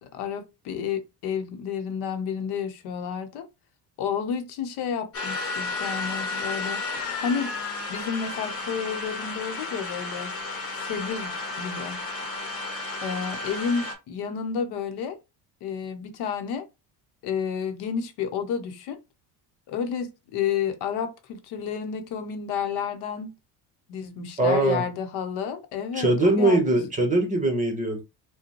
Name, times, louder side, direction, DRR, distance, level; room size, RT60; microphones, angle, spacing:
voice 1, 0.0-3.5 4.0-7.5 7.9-10.3 10.8-11.3 11.6-12.0 13.0-15.2 15.6-16.7 17.2-19.0 19.7-23.3 23.9-26.8, left 7 dB, 70° left, 0.9 m, -31 dB
sound 1, 5.1-13.9, left 3 dB, 35° left, 1.2 m, -32 dB
voice 2, 24.4-24.8 25.9-28.0, right 2 dB, 20° right, 1.0 m, -22 dB
5.0 x 2.2 x 3.0 m
cardioid pair, 150°, 41 cm